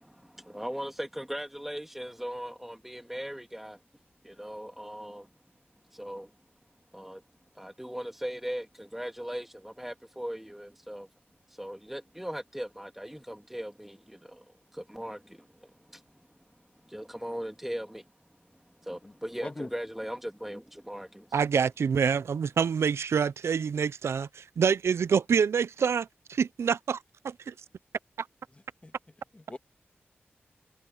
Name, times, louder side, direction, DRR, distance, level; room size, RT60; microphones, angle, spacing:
voice 1, 0.0-3.8 4.2-5.3 5.9-6.3 6.9-7.2 7.5-11.1 11.5-14.4 14.7-16.3 16.8-18.1 18.5-21.4, equal, 5° right, 2.6 m, -39 dB
voice 2, 19.0-19.7 28.5-28.9 29.3-29.6, left 2 dB, 25° left, 1.7 m, -41 dB
voice 3, 21.3-27.0 27.2-27.5 28.2-28.3, right 6 dB, 80° right, 0.5 m, -26 dB
cardioid pair, 50°, 4 cm